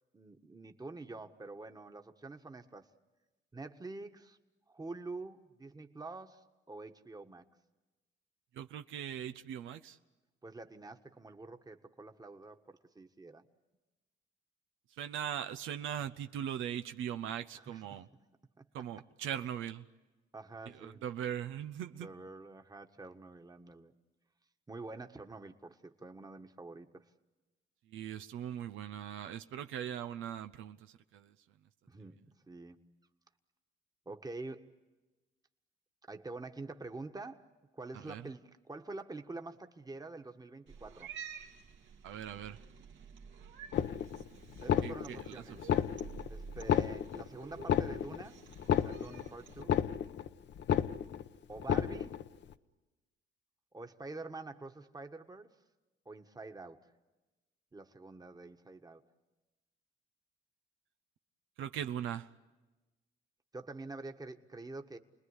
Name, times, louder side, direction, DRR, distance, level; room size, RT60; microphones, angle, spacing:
voice 1, 0.1-2.9 3.5-4.4 4.7-7.4 10.4-13.5 17.5-18.0 18.6-18.7 20.3-21.0 21.9-23.9 24.7-27.1 31.9-32.8 34.0-34.8 36.1-41.1 44.6-45.7 46.3-48.4 48.7-49.8 51.5-52.1 53.7-55.5 56.0-56.9 57.7-59.0 63.5-65.0, right 3 dB, 20° right, 1.5 m, -47 dB
voice 2, 8.5-10.0 15.0-18.1 18.7-19.8 20.7-22.1 27.9-31.3 37.9-38.3 42.0-42.6 44.8-45.8 61.6-62.3, right 9 dB, 85° right, 0.8 m, -40 dB
Cat, 40.7-49.6, right 6 dB, 70° right, 2.2 m, -51 dB
sound 1, 43.7-44.3 44.6-45.3 45.6-46.3 46.6-47.3 47.6-48.3 48.6-49.3 49.6-50.3 50.6-51.3 51.6-52.3, left 9 dB, 65° left, 0.9 m, -31 dB
29.5 x 20.5 x 9.8 m
cardioid pair, 90°, 20 cm